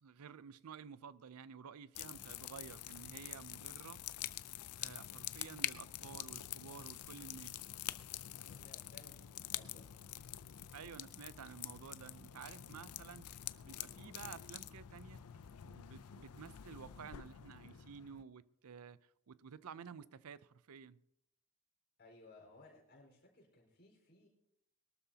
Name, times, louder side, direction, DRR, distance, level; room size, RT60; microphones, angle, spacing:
voice 1, 0.0-4.1 4.8-7.6 10.7-13.3 13.7-15.2 15.6-19.0 19.3-21.0, right 6 dB, 80° right, 0.5 m, -52 dB
sound 1, 1.9-18.2, left 12 dB, 85° left, 0.5 m, -47 dB
voice 2, 8.4-10.0 22.0-24.3, left 2 dB, 45° left, 4.5 m, -61 dB
21.5 x 12.5 x 2.8 m
head